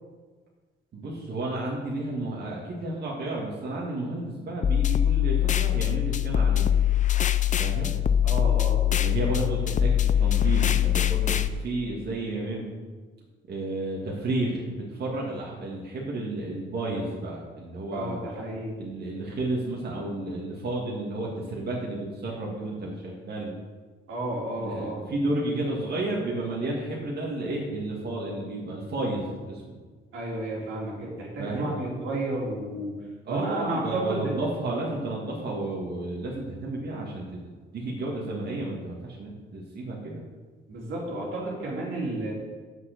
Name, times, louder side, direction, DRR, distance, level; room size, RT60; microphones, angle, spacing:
voice 1, 0.9-6.7 7.6-8.0 8.9-12.7 13.5-18.2 18.8-23.5 24.6-29.6 31.4-31.7 33.3-40.2, right 2 dB, 55° right, -4 dB, 2.0 m, -32 dB
sound 1, 4.6-11.5, left 10 dB, 40° left, 0.5 m, -23 dB
voice 2, 8.2-8.8 17.9-18.8 24.1-25.0 30.1-32.9 33.3-34.4 40.7-42.3, right 2 dB, 85° right, -4 dB, 3.1 m, -32 dB
7.5 x 6.5 x 6.6 m, 1.4 s
cardioid pair, 90°, 20 cm